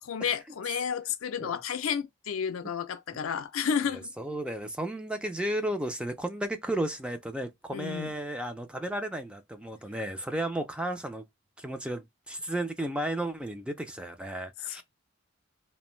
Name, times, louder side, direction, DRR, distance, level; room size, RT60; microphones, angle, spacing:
voice 1, 0.0-4.1 7.7-8.1 14.7-14.8, left 7 dB, 85° left, 0.4 m, -31 dB
voice 2, 3.9-11.2 11.6-14.8, right 1 dB, 5° right, 0.3 m, -34 dB
2.5 x 2.1 x 3.0 m
head